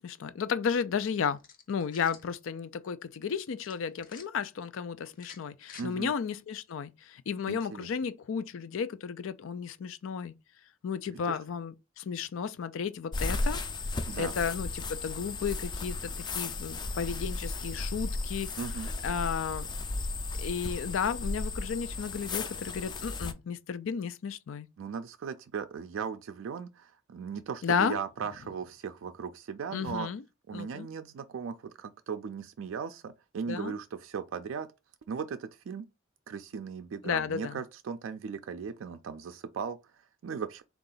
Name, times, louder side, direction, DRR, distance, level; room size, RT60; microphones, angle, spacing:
voice 1, 0.0-1.4 1.7-10.3 10.8-13.6 14.1-18.5 19.0-19.7 20.4-24.7 27.6-28.0 29.7-30.2 30.5-30.9 33.5-33.7 37.0-37.6, left 6 dB, 90° left, 0.4 m, -33 dB
sound 1, 1.4-2.3 3.6-4.3 5.1-5.9, left 6 dB, 45° left, 0.7 m, -50 dB
voice 2, 5.8-6.1 7.5-7.9 11.1-11.4 14.1-14.3 18.6-18.9 24.8-30.1 30.5-34.7 35.1-35.9 36.3-40.6, right 6 dB, 85° right, 0.4 m, -38 dB
sound 2, 13.1-23.3, left 2 dB, 20° left, 0.3 m, -35 dB
3.7 x 2.4 x 3.9 m
head